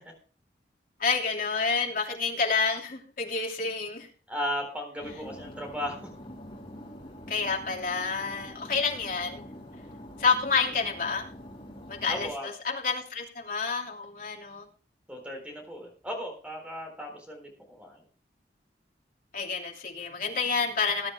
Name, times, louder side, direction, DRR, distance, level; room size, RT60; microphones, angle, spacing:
voice 1, 1.0-4.1 7.3-9.4 10.2-11.3 11.9-14.7 19.3-21.1, left 5 dB, 50° left, 0 dB, 2.9 m, -29 dB
voice 2, 4.3-6.1 12.1-12.5 15.1-18.0, equal, 10° right, 2 dB, 3.9 m, -36 dB
Road noise New Zealand Fiat ducato campervan, 5.0-12.3, equal, 30° left, 3.8 m, -45 dB
20.5 x 10.5 x 2.2 m, 0.38 s
head